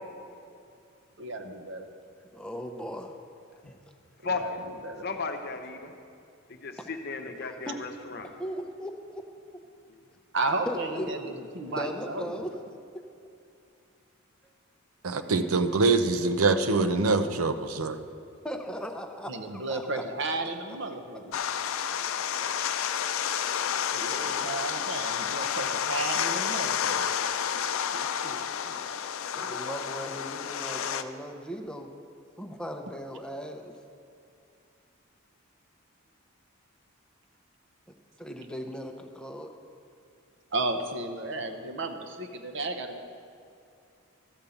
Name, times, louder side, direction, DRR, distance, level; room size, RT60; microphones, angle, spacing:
voice 1, 1.2-1.9 4.3-4.5 4.8-5.0 10.3-12.4 19.3-21.4 23.9-27.1 40.5-43.1, right 2 dB, 55° right, 6 dB, 0.8 m, -33 dB
voice 2, 2.3-3.1 3.7-3.8 6.8-6.9 7.4-7.8 8.4-9.3 10.7-12.5 14.4-14.5 15.3-15.5 18.4-20.0 24.0-24.9 27.9-28.8 29.4-31.9 32.4-33.7 38.2-39.5, equal, 5° left, 4 dB, 0.6 m, -38 dB
voice 3, 4.2-4.6 5.0-5.9 6.6-8.3 9.9-10.0, left 4 dB, 50° left, 5 dB, 0.8 m, -34 dB
voice 4, 15.0-18.0, right 3 dB, 90° right, 9 dB, 0.6 m, -24 dB
sound 1, 21.3-31.0, left 8 dB, 70° left, 0.4 m, -30 dB
13.5 x 5.2 x 7.0 m, 2.5 s
head